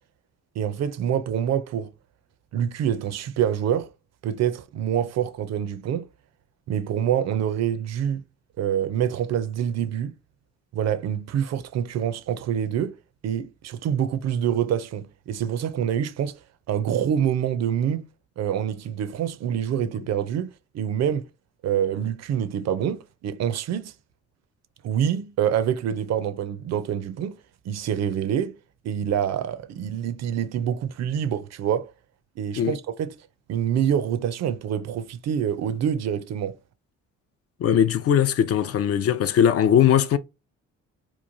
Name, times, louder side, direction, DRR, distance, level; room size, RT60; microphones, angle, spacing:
voice 1, 0.6-1.9 2.5-3.9 4.2-6.1 6.7-8.2 8.6-10.2 10.7-13.0 13.2-16.4 16.7-18.0 18.4-21.3 21.6-23.9 24.8-27.4 27.6-28.6 28.8-31.9 32.4-33.2 33.5-36.6, right 9 dB, 60° right, 0.4 m, -26 dB
voice 2, 37.6-40.2, left 9 dB, 50° left, 0.4 m, -20 dB
3.0 x 2.2 x 2.5 m
cardioid pair, 90°, 30 cm